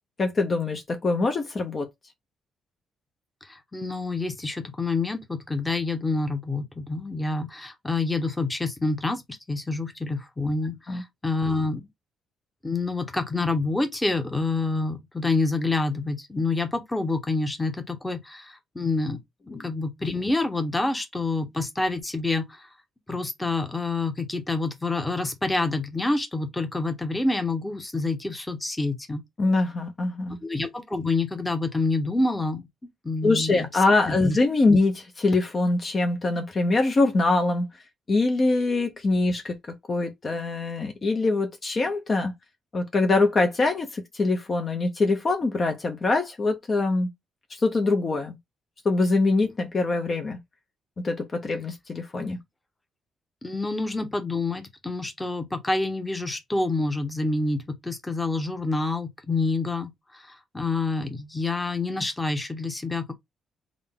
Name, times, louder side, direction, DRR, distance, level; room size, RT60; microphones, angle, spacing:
voice 1, 0.2-1.9 10.9-11.0 19.5-19.7 29.4-30.4 33.2-37.7 38.1-42.3 42.7-47.1 47.5-48.4 48.8-50.4 51.0-52.4, left 3 dB, 35° left, 0.7 m, -24 dB
voice 2, 3.4-9.2 9.5-11.9 12.6-19.2 19.5-22.7 23.1-29.2 30.4-32.7 33.0-33.7 34.0-34.4 53.4-63.1, left 3 dB, 10° left, 0.9 m, -27 dB
3.7 x 2.2 x 3.6 m
cardioid pair, 105°, 0 cm